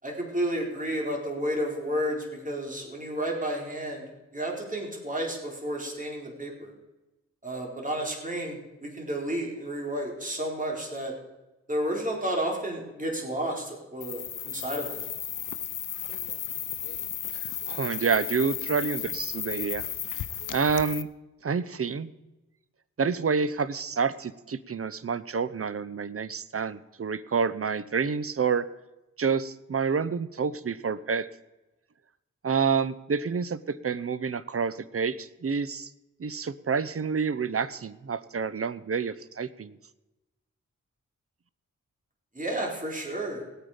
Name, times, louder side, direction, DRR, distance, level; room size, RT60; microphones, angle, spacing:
voice 1, 0.0-4.0 4.3-6.7 7.4-11.1 11.7-15.0 42.3-43.4, right 1 dB, 25° right, -1 dB, 4.4 m, -31 dB
sound 1, 14.0-21.0, left 10 dB, 85° left, 0.6 m, -34 dB
voice 2, 17.3-19.8 20.5-21.1 21.4-22.1 23.0-28.7 29.2-31.3 32.4-35.9 36.2-39.8, right 5 dB, 50° right, 16 dB, 0.8 m, -28 dB
19.0 x 9.0 x 5.1 m, 1.0 s
cardioid pair, 60°, 30 cm